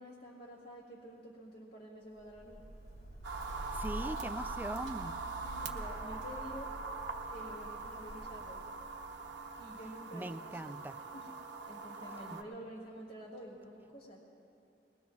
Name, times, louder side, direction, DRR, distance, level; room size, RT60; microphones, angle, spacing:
voice 1, 0.0-2.6 5.4-6.7 7.3-8.6 9.6-10.7 11.1-11.3 11.7-14.2, equal, 55° left, -6 dB, 2.0 m, -49 dB
Bird, 2.1-9.9, right 1 dB, 85° left, 3.1 m, -48 dB
sound 1, 3.2-12.4, right 3 dB, 90° right, 0.9 m, -42 dB
voice 2, 3.7-5.2 10.1-11.0 12.3-12.4, right 1 dB, 10° right, 8 dB, 0.3 m, -41 dB
23.5 x 20.0 x 2.4 m, 2.7 s
head